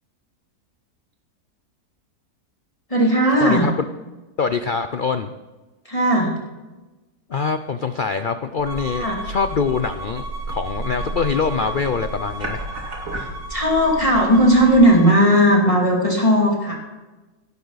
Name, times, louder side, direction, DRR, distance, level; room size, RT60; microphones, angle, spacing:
voice 1, 2.9-3.7 5.8-6.3 8.9-9.2 13.2-16.7, equal, 20° left, -2 dB, 2.6 m, -16 dB
voice 2, 3.4-3.7 4.4-5.3 7.3-12.7, left 5 dB, 75° left, 9 dB, 0.4 m, -24 dB
sound 1, 8.6-14.8, right 2 dB, 55° right, 2.9 m, -33 dB
Bowed string instrument, 8.7-15.2, equal, 75° right, 2.1 m, -36 dB
16.5 x 11.5 x 4.1 m, 1.1 s
omnidirectional pair, 1.7 m